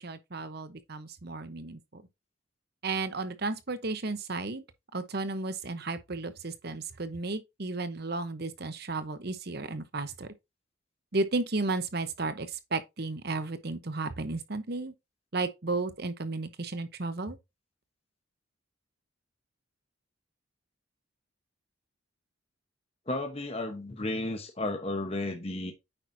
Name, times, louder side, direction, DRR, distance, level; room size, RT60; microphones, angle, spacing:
voice 1, 0.0-2.0 2.8-4.6 4.9-10.3 11.1-14.9 15.3-17.4, right 3 dB, 50° right, 0.9 m, -33 dB
voice 2, 23.1-25.7, left 2 dB, 30° left, 0.9 m, -33 dB
9.0 x 5.9 x 2.7 m
head